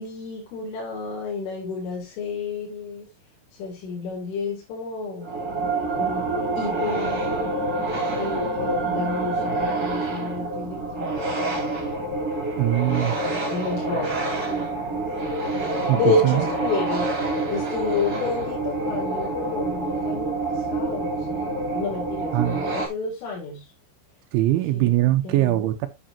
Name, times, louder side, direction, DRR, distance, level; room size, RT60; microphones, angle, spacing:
voice 1, 0.0-3.1 3.6-5.5 6.0-6.3 6.6-7.4 8.2-11.6 12.9-15.0 15.5-23.7 24.7-24.9 25.2-25.6, left 3 dB, 90° left, 5.4 m, -30 dB
sound 1, 5.2-22.9, right 2 dB, 25° right, 2.9 m, -27 dB
voice 2, 12.6-13.2 15.9-16.5 22.3-22.6 24.3-25.9, right 15 dB, 80° right, 3.1 m, -21 dB
8.9 x 8.6 x 2.8 m
omnidirectional pair, 5.5 m